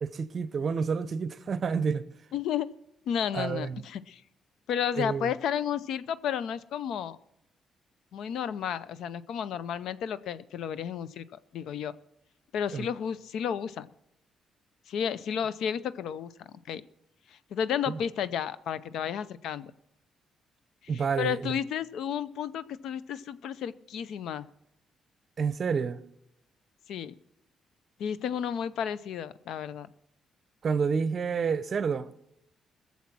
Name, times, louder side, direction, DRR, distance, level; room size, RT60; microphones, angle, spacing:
voice 1, 0.0-2.0 3.3-3.8 5.0-5.3 12.7-12.9 17.9-18.0 20.9-21.5 25.4-26.0 30.6-32.1, right 5 dB, 45° right, 0.7 m, -29 dB
voice 2, 2.3-2.7 3.1-4.2 4.7-7.2 8.1-11.3 11.5-11.9 12.5-13.9 14.9-16.3 16.7-16.8 17.3-19.7 20.9-24.5 26.9-27.2 28.0-29.9, left 8 dB, 75° left, 0.6 m, -32 dB
19.5 x 7.3 x 6.0 m
cardioid pair, 90°, 0 cm